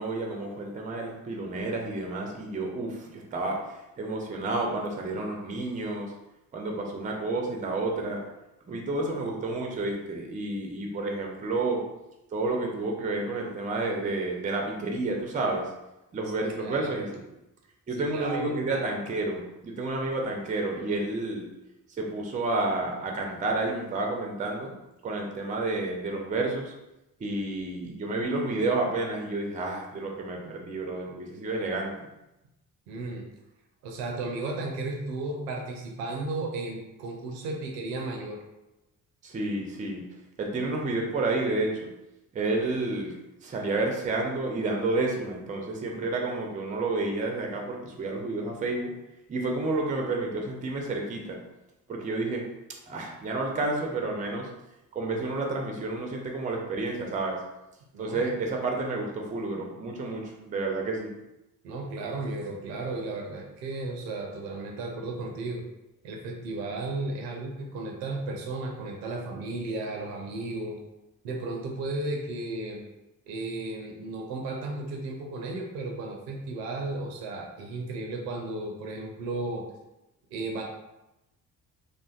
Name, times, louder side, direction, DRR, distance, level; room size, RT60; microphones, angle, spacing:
voice 1, 0.0-6.1 6.5-8.2 8.7-11.9 12.3-15.7 16.1-17.2 17.9-21.5 22.0-24.8 25.0-26.7 27.2-31.9 39.2-40.0 40.4-41.9 42.3-43.2 43.4-48.9 49.3-51.4 51.9-52.4 52.9-54.5 54.9-57.4 58.0-61.1, right 2 dB, 15° right, 1 dB, 0.4 m, -30 dB
voice 2, 16.4-17.0 17.9-18.9 32.9-33.3 33.8-38.4 57.9-58.2 61.6-65.6 66.0-70.8 71.2-72.8 73.3-79.6 80.3-80.6, right 2 dB, 75° right, 1 dB, 0.6 m, -34 dB
2.5 x 2.2 x 2.4 m, 0.94 s
figure-of-eight pair, 40°, 49 cm